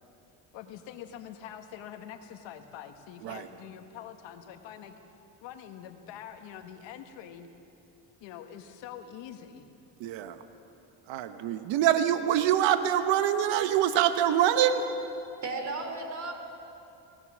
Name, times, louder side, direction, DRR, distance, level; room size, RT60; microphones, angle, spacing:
voice 1, 0.5-5.0 5.4-7.5 8.2-9.6, left 9 dB, 85° left, 6 dB, 1.6 m, -45 dB
voice 2, 10.0-10.4 11.1-14.9, right 10 dB, 80° right, 9 dB, 1.2 m, -25 dB
voice 3, 15.4-16.3, right 3 dB, 40° right, 5 dB, 3.6 m, -34 dB
23.5 x 18.0 x 6.3 m, 2.8 s
cardioid pair, 90°, 43 cm